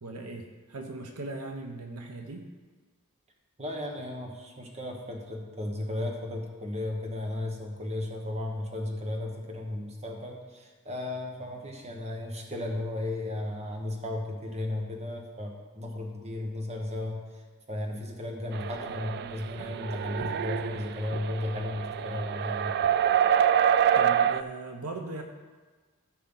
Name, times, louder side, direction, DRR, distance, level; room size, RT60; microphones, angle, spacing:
voice 1, 0.0-2.5 24.0-25.2, right 2 dB, 70° right, 3 dB, 0.9 m, -39 dB
voice 2, 3.6-17.2 17.7-22.7, left 1 dB, 30° right, 1 dB, 1.3 m, -35 dB
sound 1, 18.5-24.4, right 9 dB, 45° right, 0.3 m, -26 dB
14.5 x 5.7 x 3.9 m, 1.4 s
head